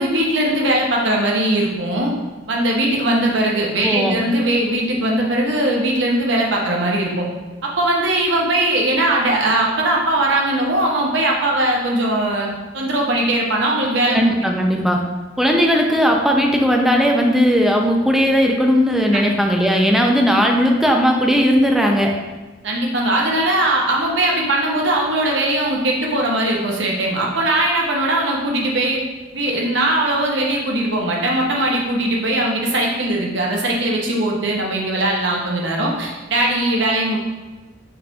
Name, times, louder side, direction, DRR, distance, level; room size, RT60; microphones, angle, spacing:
voice 1, 0.0-2.1 2.5-7.3 7.6-12.5 12.7-14.3 19.1-19.2 22.6-29.0 29.3-37.2, right 1 dB, 65° right, -1 dB, 0.9 m, -20 dB
voice 2, 3.8-4.2 14.1-15.0 15.4-22.1, equal, ahead, 1 dB, 0.4 m, -17 dB
5.8 x 2.6 x 3.4 m, 1.2 s
head